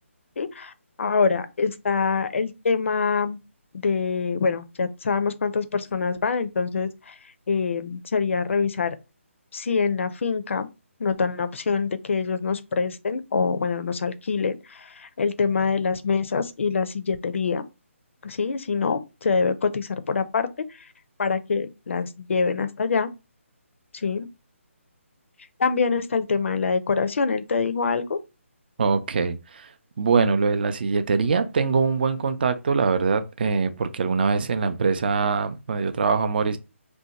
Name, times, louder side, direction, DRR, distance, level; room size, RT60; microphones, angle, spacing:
voice 1, 0.4-0.7 1.0-3.4 3.7-7.1 7.5-8.9 9.5-10.7 11.0-17.6 18.2-20.5 21.2-23.1 23.9-24.3 25.6-28.2, left 5 dB, 60° left, 0.5 m, -25 dB
voice 2, 28.8-29.7 30.0-36.6, right 5 dB, 45° right, 0.4 m, -23 dB
2.7 x 2.2 x 3.9 m
hypercardioid pair, 160°, 7 cm